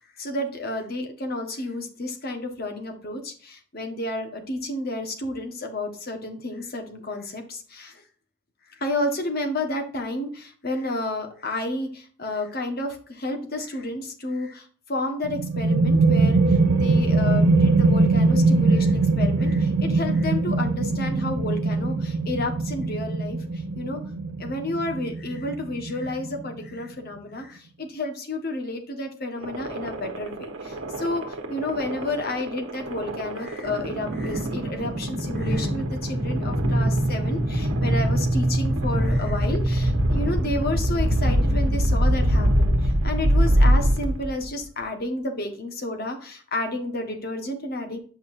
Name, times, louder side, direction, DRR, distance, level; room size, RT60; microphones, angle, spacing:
voice 1, 0.2-8.0 8.7-24.0 24.4-48.0, left 2 dB, 50° left, 4 dB, 1.3 m, -31 dB
sound 1, 15.2-26.6, right 3 dB, 55° right, 0.6 m, -22 dB
sound 2, 29.4-44.5, equal, 85° right, 1.2 m, -23 dB
7.7 x 5.6 x 2.6 m, 0.43 s
head